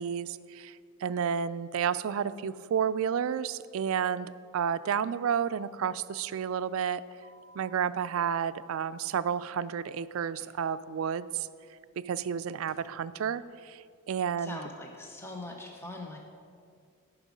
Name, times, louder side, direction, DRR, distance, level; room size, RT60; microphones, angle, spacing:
voice 1, 0.0-7.0 7.6-11.5 12.0-14.6, right 7 dB, 65° right, 15 dB, 0.3 m, -31 dB
sound 1, 7.2-7.7 10.1-10.7 11.8-12.2 12.6-12.9, left 1 dB, 70° left, 1.7 m, -56 dB
voice 2, 14.4-16.2, left 2 dB, 10° left, 1 dB, 0.7 m, -41 dB
13.0 x 6.0 x 5.1 m, 2.3 s
head